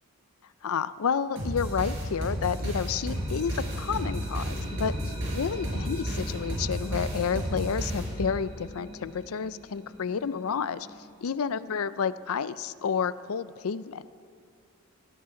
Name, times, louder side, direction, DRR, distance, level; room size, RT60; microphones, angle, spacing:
voice 1, 0.6-10.9 11.2-14.0, left 6 dB, 75° left, 16 dB, 0.5 m, -30 dB
sound 1, 1.4-8.5, equal, 55° right, 5.1 m, -32 dB
sound 2, 2.1-11.9, equal, 30° right, 2.2 m, -44 dB
19.0 x 16.5 x 3.8 m, 2.2 s
head